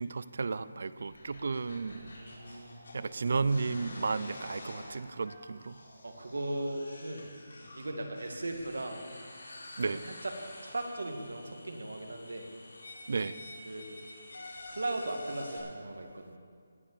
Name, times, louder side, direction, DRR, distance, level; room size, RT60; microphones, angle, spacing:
voice 1, 0.0-2.1 2.9-5.8 9.8-10.0 13.1-13.4, right 4 dB, 50° right, 16 dB, 0.5 m, -33 dB
sound 1, 1.1-15.6, left 2 dB, 75° left, 4.6 m, -48 dB
voice 2, 2.1-2.8 6.0-7.2 7.6-9.0 9.7-10.3 10.6-12.5 13.6-13.9 14.7-16.4, right 2 dB, 90° right, 3 dB, 2.1 m, -38 dB
18.5 x 7.6 x 7.0 m, 2.1 s
hypercardioid pair, 175°, 0 cm